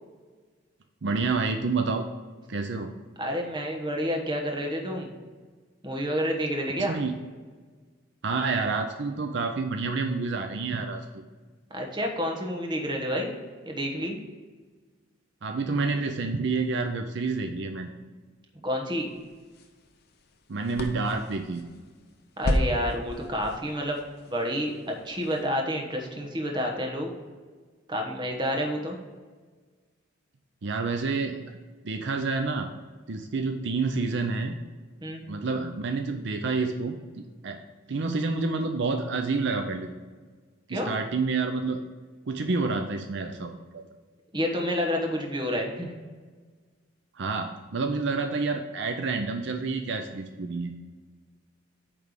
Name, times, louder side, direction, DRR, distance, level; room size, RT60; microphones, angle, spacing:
voice 1, 1.0-2.0 2.5-2.9 6.8-7.1 8.2-11.2 15.4-17.9 20.5-21.7 30.6-31.4 31.8-32.7 33.1-34.6 35.3-37.6 37.9-39.9 40.7-41.8 42.3-43.8 47.1-50.7, right 4 dB, 60° right, 5 dB, 0.6 m, -28 dB
voice 2, 3.2-5.1 5.8-7.0 11.7-13.3 13.7-14.2 18.6-19.1 22.4-24.0 24.3-27.1 27.9-29.0 35.0-35.2 40.7-40.9 44.3-45.9, equal, 25° right, 0 dB, 1.2 m, -29 dB
sound 1, 18.9-25.5, left 1 dB, 55° left, 0.8 m, -35 dB
8.8 x 3.4 x 6.6 m, 1.4 s
head